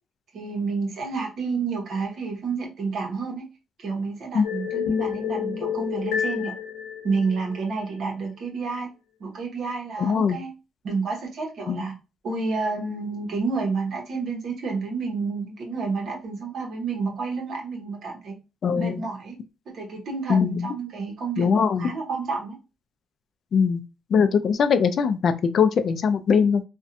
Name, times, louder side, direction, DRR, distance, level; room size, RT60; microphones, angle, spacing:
voice 1, 0.3-3.5 3.8-6.5 7.0-8.9 9.2-10.5 10.8-11.9 12.2-18.4 18.7-19.4 19.7-22.6, right 4 dB, 65° right, 0.8 m, -30 dB
sound 1, 4.4-7.8, left 7 dB, 90° left, 0.9 m, -29 dB
voice 2, 10.0-10.4 11.7-11.8 18.6-19.0 20.3-20.7 21.4-21.9 23.5-23.8 24.1-26.6, left 6 dB, 60° left, 0.3 m, -21 dB
2.6 x 2.1 x 2.5 m
cardioid pair, 90°, 0 cm